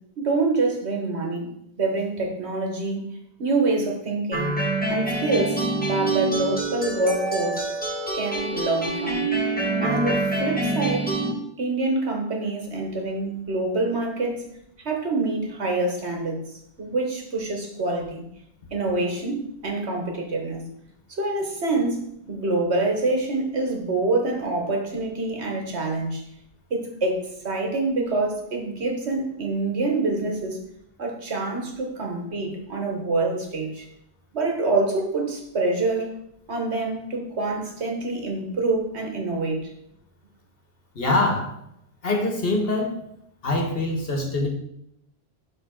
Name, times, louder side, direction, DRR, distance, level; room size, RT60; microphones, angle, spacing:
voice 1, 0.2-1.5 1.8-3.1 3.4-4.6 4.9-7.7 8.1-9.2 9.8-11.1 11.6-14.5 14.8-16.5 16.8-18.2 18.7-20.7 21.1-26.2 26.7-30.6 31.0-33.8 34.3-36.1 36.5-39.7, right 2 dB, 85° right, 2 dB, 1.7 m, -26 dB
sound 1, 4.3-11.3, right 2 dB, 10° left, 1.8 m, -26 dB
voice 2, 40.9-41.5 42.0-43.0 43.4-44.5, left 2 dB, 60° left, 3 dB, 1.6 m, -24 dB
11.5 x 3.9 x 3.9 m, 0.77 s
omnidirectional pair, 1.1 m